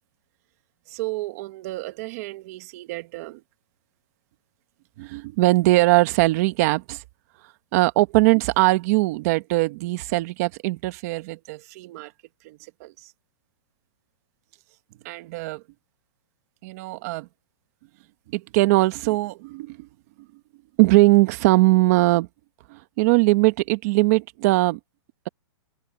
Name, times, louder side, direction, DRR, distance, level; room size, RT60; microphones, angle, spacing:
voice 1, 0.9-3.4 5.0-7.0 7.7-12.1 12.4-12.9 15.0-15.6 16.6-17.3 18.3-19.9 20.8-22.3 22.7-24.8, right 20 dB, 35° right, 1.4 m, -21 dB
open air
hypercardioid pair, 170°, 15 cm